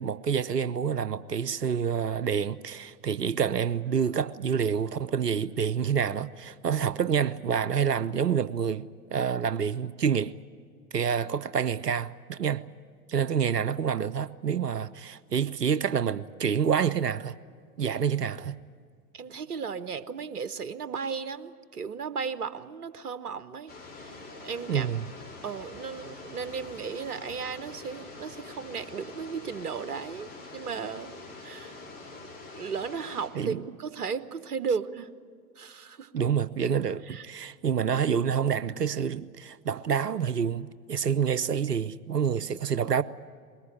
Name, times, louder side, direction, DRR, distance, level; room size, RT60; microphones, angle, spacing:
voice 1, 0.0-10.3 10.9-12.6 13.1-17.4 17.8-18.6 24.7-25.1 33.3-33.7 36.1-43.0, right 7 dB, 85° right, 0.7 m, -28 dB
voice 2, 19.1-23.7 24.4-24.9 25.4-31.1 31.4-31.8 32.5-35.1 35.6-36.1 37.1-37.2, right 6 dB, 70° right, 1.1 m, -35 dB
sound 1, 23.7-33.3, left 3 dB, 20° left, 4.8 m, -45 dB
21.5 x 19.0 x 9.8 m
figure-of-eight pair, 105°, 47 cm